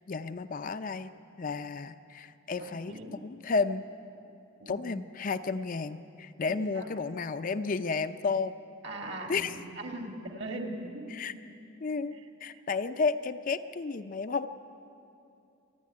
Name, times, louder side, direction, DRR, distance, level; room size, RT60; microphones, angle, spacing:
voice 1, 0.1-1.1 1.4-3.8 4.7-8.5 9.3-9.6 11.1-11.3 11.8-14.5, left 4 dB, 40° left, 10 dB, 0.5 m, -32 dB
voice 2, 2.6-3.2 4.6-4.8 6.5-6.9 8.8-11.1, right 1 dB, 55° right, 2 dB, 2.2 m, -40 dB
27.0 x 10.5 x 9.5 m, 2.7 s
head